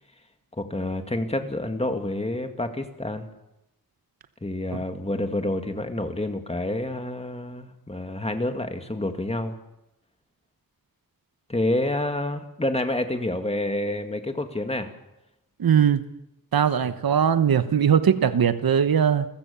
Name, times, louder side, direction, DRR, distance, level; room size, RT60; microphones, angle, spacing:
voice 1, 0.6-3.3 4.4-9.6 11.5-14.9, left 1 dB, 20° left, 6 dB, 2.1 m, -28 dB
voice 2, 15.6-16.0 16.5-19.2, right 8 dB, 90° right, 11 dB, 1.1 m, -20 dB
29.5 x 15.0 x 7.0 m, 0.89 s
wide cardioid pair, 130°, 35 cm